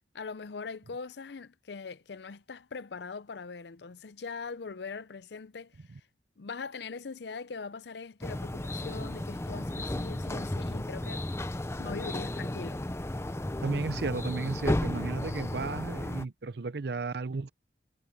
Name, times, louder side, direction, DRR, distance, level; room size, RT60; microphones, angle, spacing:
voice 1, 0.1-6.0 6.4-11.3 11.8-12.8, left 4 dB, 65° left, 0.6 m, -41 dB
sound 1, 8.2-16.3, left 1 dB, 15° left, 0.6 m, -34 dB
voice 2, 13.6-17.5, right 3 dB, 60° right, 0.6 m, -34 dB
head